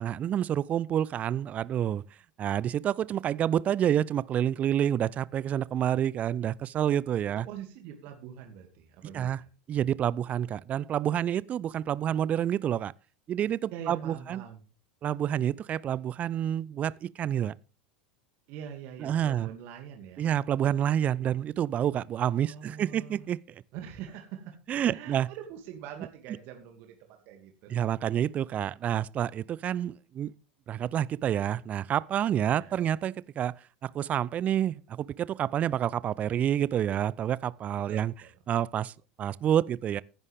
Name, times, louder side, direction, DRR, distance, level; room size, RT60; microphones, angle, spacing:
voice 1, 0.0-2.0 2.4-7.5 9.1-9.4 9.7-12.9 13.3-14.4 15.0-17.5 19.0-19.5 20.2-23.4 24.7-25.3 27.7-30.3 30.7-33.5 33.8-38.1 38.5-40.0, right 10 dB, 30° right, 0.5 m, -28 dB
voice 2, 7.4-9.5 13.7-14.6 18.5-20.2 22.3-23.3 23.7-27.0 27.3-27.7 32.4-32.8 37.9-38.3, right 9 dB, 45° right, 2.5 m, -44 dB
16.0 x 10.5 x 3.6 m
figure-of-eight pair, 80°, 5 cm